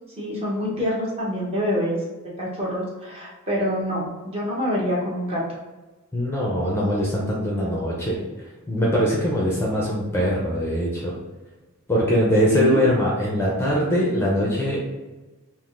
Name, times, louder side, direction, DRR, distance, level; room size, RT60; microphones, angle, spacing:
voice 1, 0.2-2.0 2.4-5.4 12.5-12.8, equal, 30° right, -5 dB, 1.0 m, -26 dB
voice 2, 6.1-8.2 8.7-11.1 11.9-14.8, equal, 10° left, -4 dB, 0.5 m, -22 dB
3.5 x 2.5 x 2.5 m, 1.2 s
head